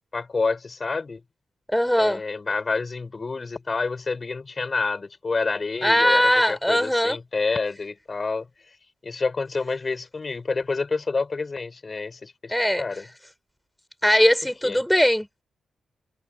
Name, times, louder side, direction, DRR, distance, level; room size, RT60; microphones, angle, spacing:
voice 1, 0.1-1.2 2.0-8.8 9.0-13.1 14.6-14.8, left 4 dB, 40° left, 5.6 m, -28 dB
voice 2, 1.7-2.2 5.8-7.2 12.5-12.8 14.0-15.3, equal, 5° left, 5.7 m, -20 dB
cardioid pair, 65°, 0 cm